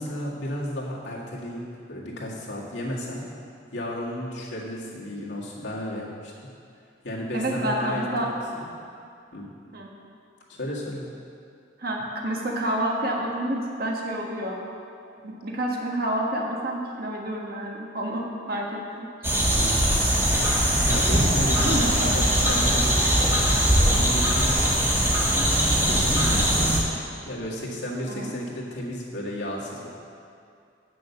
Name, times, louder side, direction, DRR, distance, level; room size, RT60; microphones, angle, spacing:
voice 1, 0.0-1.6 1.9-3.3 3.7-6.3 7.0-8.7 9.3-9.5 10.5-11.1 19.6-19.9 20.8-23.4 23.8-25.0 25.7-26.9 27.2-29.9, equal, 85° left, -5 dB, 1.9 m, -33 dB
voice 2, 7.3-8.3 9.7-9.9 11.8-14.6 15.2-19.1 21.6-22.1 28.1-28.3, right 1 dB, 55° right, -1 dB, 1.4 m, -29 dB
sound 1, 19.2-26.8, equal, 15° right, 1.3 m, -21 dB
7.8 x 6.4 x 6.9 m, 2.4 s
head